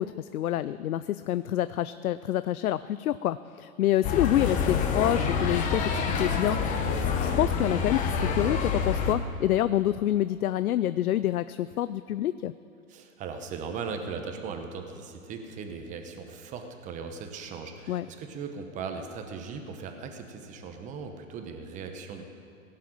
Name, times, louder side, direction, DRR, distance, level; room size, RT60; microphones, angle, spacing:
voice 1, 0.0-6.8 7.2-12.5 17.9-18.1, left 13 dB, 85° left, 14 dB, 0.5 m, -27 dB
sound 1, 4.0-9.1, left 5 dB, 20° left, 0.9 m, -27 dB
voice 2, 12.9-22.2, right 5 dB, 15° right, 5 dB, 1.0 m, -38 dB
17.5 x 7.5 x 8.9 m, 2.5 s
hypercardioid pair, 140°, 42 cm